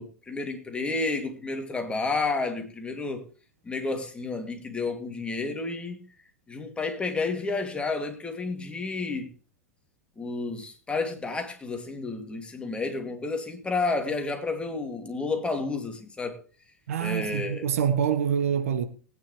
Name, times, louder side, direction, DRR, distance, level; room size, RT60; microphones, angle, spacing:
voice 1, 0.0-3.2 3.6-6.0 6.5-9.3 10.2-16.4 17.0-17.7, left 3 dB, 15° left, 2.8 m, -31 dB
voice 2, 16.9-18.8, right 8 dB, 70° right, 1.4 m, -26 dB
19.5 x 9.9 x 3.3 m
figure-of-eight pair, 90°, 8 cm